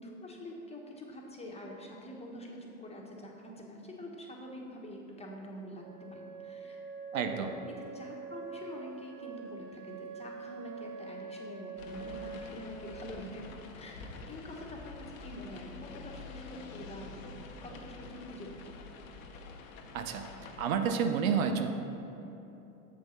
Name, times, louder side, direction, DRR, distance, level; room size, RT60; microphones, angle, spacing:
voice 1, 0.0-6.8 7.1-18.8, equal, 15° left, -1 dB, 1.2 m, -46 dB
Wind instrument woodwind instrument, 5.8-13.5, right 4 dB, 50° right, 1.1 m, -45 dB
voice 2, 7.1-7.5 19.9-20.3 20.6-21.7, right 6 dB, 75° right, 6 dB, 0.7 m, -29 dB
sound 1, 11.8-20.7, left 4 dB, 70° left, 0.9 m, -47 dB
7.5 x 4.7 x 5.7 m, 3.0 s
hypercardioid pair, 90°, 41 cm